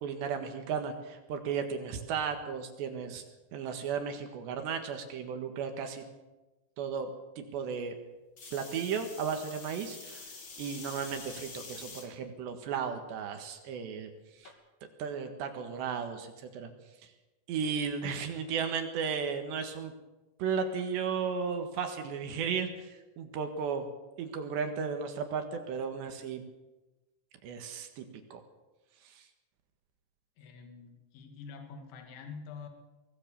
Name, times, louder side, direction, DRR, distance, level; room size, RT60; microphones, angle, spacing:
voice 1, 0.0-3.2 3.5-6.0 6.8-7.1 7.4-8.0 8.5-10.3 10.6-14.1 14.4-14.5 15.0-16.7 17.5-19.9 20.4-23.9 24.2-26.4 27.4-28.1 28.3-28.4 29.1-29.2, right 6 dB, 65° right, 6 dB, 3.6 m, -35 dB
sound 1, 8.4-12.1 12.7-13.2 14.4-14.5, left 4 dB, 35° left, 2.3 m, -46 dB
voice 2, 30.4-32.7, left 5 dB, 70° left, 5 dB, 4.6 m, -46 dB
23.0 x 18.0 x 7.0 m, 1.1 s
omnidirectional pair, 5.8 m